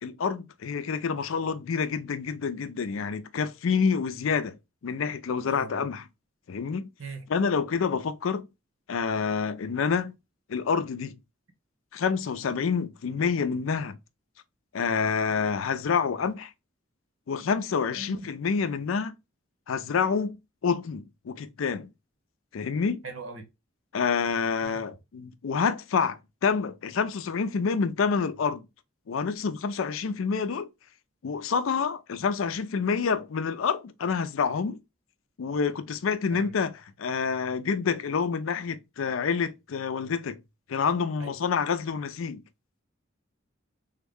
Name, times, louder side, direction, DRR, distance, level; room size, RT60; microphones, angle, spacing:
voice 1, 0.0-4.6 4.8-6.1 6.5-6.9 7.3-8.5 8.9-10.1 10.5-11.1 11.9-14.0 14.7-16.5 17.3-19.1 19.7-20.4 20.6-21.9 22.5-23.0 23.9-28.7 29.1-30.7 31.2-34.8 35.4-36.7 37.0-40.4 40.7-42.4, left 5 dB, 80° left, 0.4 m, -28 dB
voice 2, 5.3-5.9 7.0-7.3 17.9-18.3 23.0-23.4 24.6-24.8 36.3-36.5 41.2-41.3, right 3 dB, 80° right, 0.9 m, -41 dB
3.5 x 2.1 x 3.5 m
head